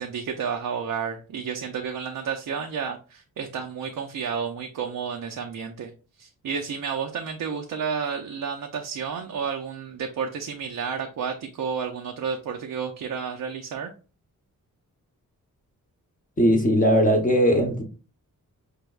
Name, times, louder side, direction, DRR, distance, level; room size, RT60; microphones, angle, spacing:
voice 1, 0.0-5.9 6.2-13.9, right 6 dB, 70° right, 0.6 m, -31 dB
voice 2, 16.4-17.8, equal, 25° left, 0.8 m, -19 dB
5.1 x 3.3 x 2.3 m
wide cardioid pair, 135°, 33 cm